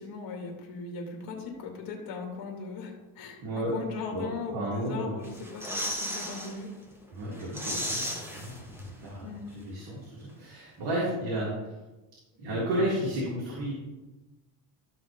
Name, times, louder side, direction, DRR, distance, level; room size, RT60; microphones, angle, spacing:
voice 1, 0.0-6.7 9.2-9.5, left 4 dB, 55° left, 1 dB, 2.5 m, -38 dB
voice 2, 3.4-3.7 4.1-4.3 4.5-5.1 7.1-9.2 9.6-11.7 12.4-13.7, right 1 dB, 60° right, -6 dB, 3.5 m, -32 dB
sound 1, 5.2-6.5 6.9-7.0 7.3-9.1 9.3-9.4, equal, 5° right, 1.7 m, -35 dB
13.5 x 6.4 x 3.7 m, 1.1 s
cardioid pair, 135°, 43 cm